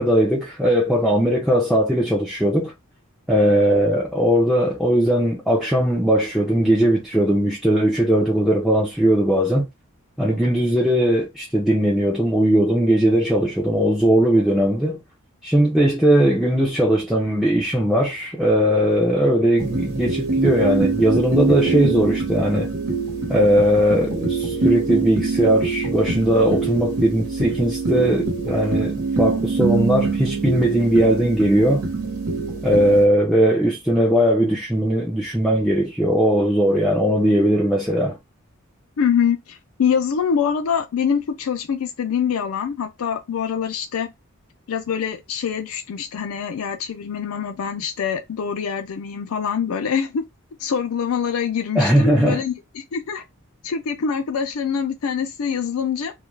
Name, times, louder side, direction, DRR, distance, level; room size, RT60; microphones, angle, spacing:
voice 1, 0.0-2.7 3.3-9.7 10.2-15.0 15.4-22.7 23.3-31.9 32.6-38.2 51.8-52.4, equal, ahead, 0.4 m, -19 dB
sound 1, 19.6-33.0, right 4 dB, 80° right, 1.0 m, -24 dB
voice 2, 39.0-44.1 44.7-50.2 50.6-53.2 53.6-56.1, left 7 dB, 80° left, 0.4 m, -24 dB
2.3 x 2.2 x 3.1 m
head